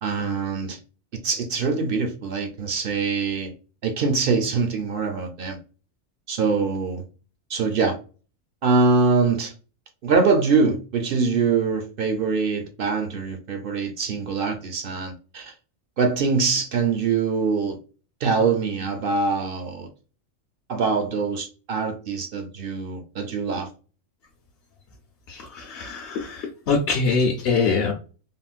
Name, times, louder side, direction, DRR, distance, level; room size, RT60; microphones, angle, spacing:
voice 1, 0.0-0.8 1.1-3.5 3.8-5.6 6.3-7.0 7.5-8.0 8.6-9.5 10.0-15.5 16.0-17.8 18.2-19.9 20.7-23.7, right 4 dB, 55° right, 0.7 m, -23 dB
voice 2, 25.3-27.9, left 4 dB, 60° left, 0.8 m, -24 dB
3.6 x 2.1 x 2.4 m
omnidirectional pair, 1.4 m